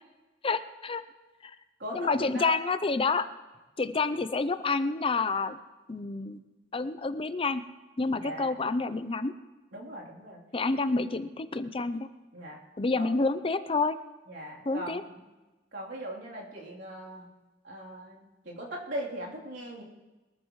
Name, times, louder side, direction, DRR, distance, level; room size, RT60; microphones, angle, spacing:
voice 1, 0.4-1.0 1.4-1.5 1.9-3.3 3.8-5.6 5.9-6.4 6.7-7.6 8.0-9.3 10.5-12.1 12.8-14.0 14.7-15.0, left 3 dB, 30° left, 12 dB, 0.6 m, -28 dB
voice 2, 1.8-2.6 8.1-8.5 9.7-10.4 12.3-12.6 13.0-13.2 14.3-15.2 15.7-17.3 17.6-19.8, right 1 dB, 90° right, -4 dB, 3.4 m, -39 dB
22.0 x 13.5 x 3.2 m, 1.2 s
head